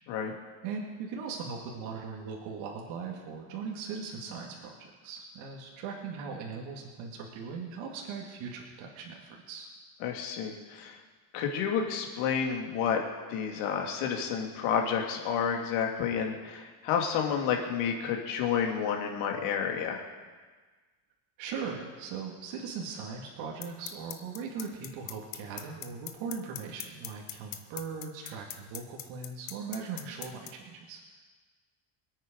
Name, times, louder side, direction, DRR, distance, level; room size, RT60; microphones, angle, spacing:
voice 1, 0.6-4.7 5.0-9.7 21.4-31.0, right 5 dB, 70° right, -1 dB, 2.3 m, -39 dB
voice 2, 10.0-11.0 11.3-13.0 13.3-20.0, left 7 dB, 85° left, 2 dB, 2.5 m, -30 dB
sound 1, 23.6-30.5, left 14 dB, 60° left, 1.2 m, -38 dB
25.0 x 9.1 x 5.2 m, 1.4 s
cardioid pair, 175°, 49 cm